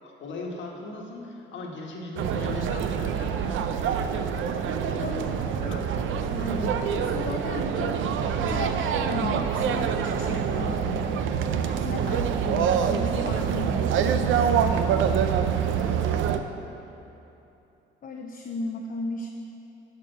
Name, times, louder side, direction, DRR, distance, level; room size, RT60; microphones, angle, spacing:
voice 1, 0.0-4.3 5.6-5.8 12.5-12.7 15.4-16.3, left 2 dB, 70° left, 0 dB, 1.4 m, -40 dB
sound 1, 2.2-16.4, right 7 dB, 80° right, 0.5 m, -26 dB
voice 2, 4.9-6.0 6.3-8.1 8.4-11.3 11.6-14.7 18.0-19.3, left 3 dB, 45° left, 1 dB, 0.7 m, -35 dB
11.0 x 5.0 x 5.6 m, 2.8 s
cardioid pair, 90°, 20 cm